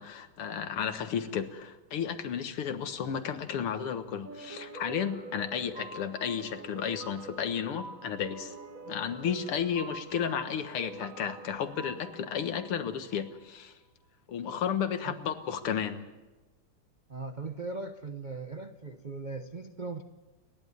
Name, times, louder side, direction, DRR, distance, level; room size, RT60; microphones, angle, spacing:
voice 1, 0.0-8.5 8.9-13.7 14.3-16.1, left 8 dB, 80° left, 9 dB, 2.3 m, -33 dB
sound 1, 4.2-13.5, right 3 dB, 45° right, 1.7 m, -46 dB
voice 2, 17.1-20.0, right 3 dB, 60° right, 8 dB, 0.4 m, -39 dB
30.0 x 11.5 x 9.5 m, 1.2 s
omnidirectional pair, 2.4 m